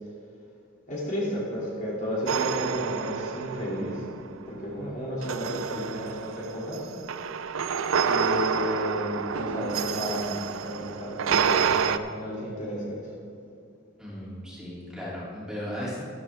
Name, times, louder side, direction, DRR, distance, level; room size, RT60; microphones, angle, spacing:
voice 1, 0.9-4.1 4.5-6.9 8.0-13.1, equal, 40° left, -6 dB, 2.8 m, -32 dB
sound 1, 2.3-4.3 5.2-12.0, right 6 dB, 80° right, 0.5 m, -28 dB
voice 2, 14.0-16.0, equal, 5° right, -8 dB, 3.0 m, -36 dB
12.5 x 12.5 x 3.6 m, 2.3 s
head